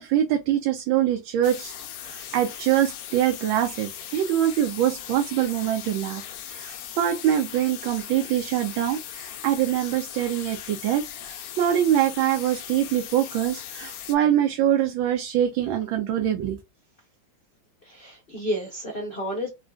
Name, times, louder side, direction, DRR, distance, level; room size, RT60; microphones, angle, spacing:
voice 1, 0.0-1.7 2.0-16.6, right 11 dB, 80° right, 1.4 m, -24 dB
sound 1, 1.4-14.2, left 10 dB, 75° left, 0.8 m, -39 dB
voice 2, 17.8-19.5, equal, 45° left, 0.7 m, -31 dB
3.8 x 2.3 x 2.2 m
omnidirectional pair, 2.1 m